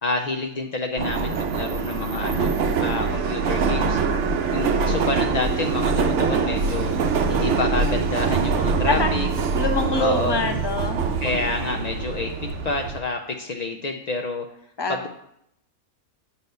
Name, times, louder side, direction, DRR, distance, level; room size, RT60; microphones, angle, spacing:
voice 1, 0.0-4.0 4.5-7.0 7.3-9.3 10.0-10.4 11.2-14.4 14.9-15.1, left 3 dB, 60° left, 3 dB, 0.4 m, -28 dB
Subway metro underground, 1.0-13.0, right 5 dB, 65° right, 1.0 m, -24 dB
voice 2, 9.6-11.0 14.8-15.1, left 2 dB, 20° left, 5 dB, 0.8 m, -24 dB
8.1 x 4.2 x 6.6 m, 0.73 s
omnidirectional pair, 1.4 m